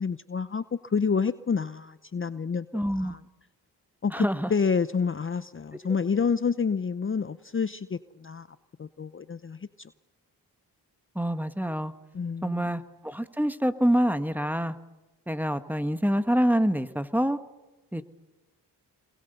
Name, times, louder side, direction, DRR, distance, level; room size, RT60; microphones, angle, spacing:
voice 1, 0.0-2.7 3.0-3.2 4.0-8.5 8.8-9.9 12.1-12.7, left 5 dB, 30° left, 14 dB, 0.7 m, -28 dB
voice 2, 2.7-3.2 4.1-4.5 11.1-11.9 12.4-14.7 15.3-17.4 17.9-18.0, equal, 5° right, 11 dB, 1.5 m, -26 dB
27.0 x 22.0 x 6.9 m, 1.1 s
supercardioid pair, 50°, 42 cm